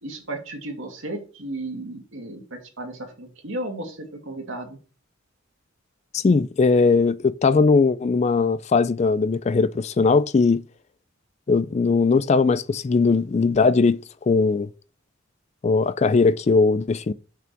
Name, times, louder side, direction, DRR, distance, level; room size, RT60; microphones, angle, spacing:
voice 1, 0.0-4.8, right 1 dB, 70° right, 2.3 m, -34 dB
voice 2, 6.1-10.6 11.5-14.0 14.3-14.7 15.6-17.1, left 4 dB, 30° left, 0.3 m, -19 dB
6.1 x 6.1 x 4.6 m
head